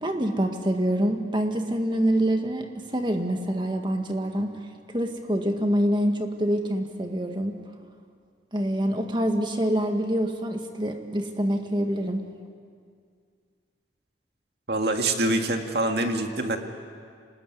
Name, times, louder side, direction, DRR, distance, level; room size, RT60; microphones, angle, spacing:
voice 1, 0.0-4.5 4.9-7.6 8.5-12.2, equal, 25° right, 4 dB, 1.8 m, -26 dB
voice 2, 14.7-16.6, right 2 dB, 65° right, 4 dB, 2.1 m, -25 dB
25.5 x 19.5 x 9.6 m, 2.1 s
head